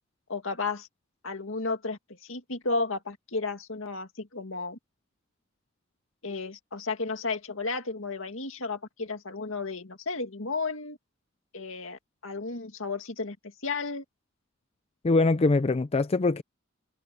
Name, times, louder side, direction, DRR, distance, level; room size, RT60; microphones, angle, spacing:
voice 1, 0.3-0.9 1.2-4.8 6.2-11.0 11.5-13.4 13.6-14.0, left 3 dB, 70° left, 2.3 m, -33 dB
voice 2, 15.0-16.4, left 3 dB, 30° left, 0.5 m, -23 dB
head